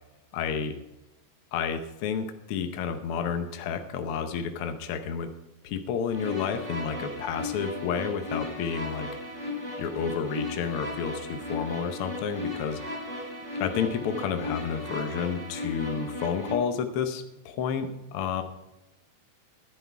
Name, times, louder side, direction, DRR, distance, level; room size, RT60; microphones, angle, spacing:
voice 1, 0.3-0.8 1.5-5.3 5.6-9.1 9.8-12.8 13.6-18.4, left 7 dB, 65° left, 7 dB, 1.5 m, -30 dB
sound 1, 6.1-16.5, left 2 dB, 45° right, 6.1 m, -36 dB
11.5 x 9.8 x 4.6 m, 0.97 s
omnidirectional pair, 3.3 m